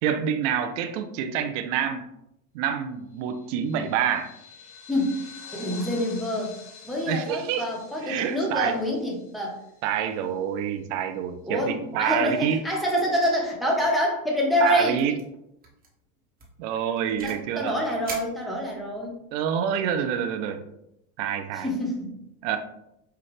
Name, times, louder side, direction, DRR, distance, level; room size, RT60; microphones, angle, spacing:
voice 1, 0.0-2.0 2.5-4.3 7.1-7.7 8.0-8.8 9.8-12.6 14.6-15.1 16.6-17.8 19.3-20.6 21.2-21.7 22.4-22.6, right 8 dB, 60° right, 8 dB, 0.6 m, -27 dB
sound 1, 3.3-10.1, left 5 dB, 40° left, 1.4 m, -47 dB
voice 2, 5.5-6.5 6.8-9.6 11.5-15.0 17.2-19.2 21.6-22.1, equal, ahead, -2 dB, 1.0 m, -26 dB
sound 2, 13.2-13.5 13.8-14.1 14.3-14.4 15.0-15.2 15.6-15.9 16.4-17.5 18.0-19.0, right 3 dB, 20° right, 1.2 m, -42 dB
5.7 x 2.4 x 3.2 m, 0.82 s
hypercardioid pair, 105°, 43 cm